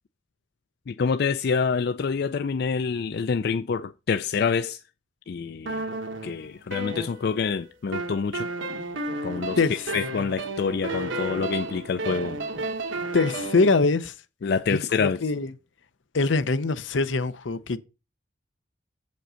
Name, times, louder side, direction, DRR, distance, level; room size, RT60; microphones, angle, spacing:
voice 1, 0.9-4.8 5.3-5.9 6.2-8.5 9.2-9.6 9.9-12.4 14.4-15.2, left 5 dB, 55° left, 0.4 m, -27 dB
sound 1, 5.7-7.5 7.9-13.7, right 2 dB, 85° right, 1.3 m, -32 dB
voice 2, 13.1-14.1 14.7-15.5 16.1-17.8, left 3 dB, 80° left, 0.7 m, -23 dB
7.8 x 5.3 x 5.6 m
head